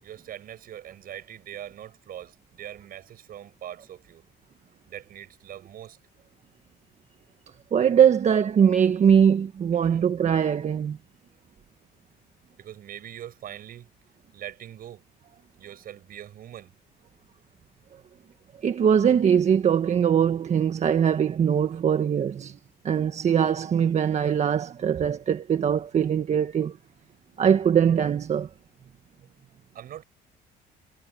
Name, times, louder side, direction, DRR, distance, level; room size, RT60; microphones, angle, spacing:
voice 1, 0.0-4.2 4.9-6.0 9.7-10.0 12.6-13.9 14.3-15.0 15.6-16.7 29.7-30.0, right 11 dB, 60° right, 6.1 m, -42 dB
voice 2, 7.7-11.0 18.6-22.6 22.8-26.8 27.4-28.5, right 8 dB, 40° right, 1.3 m, -21 dB
cardioid pair, 110°, 17 cm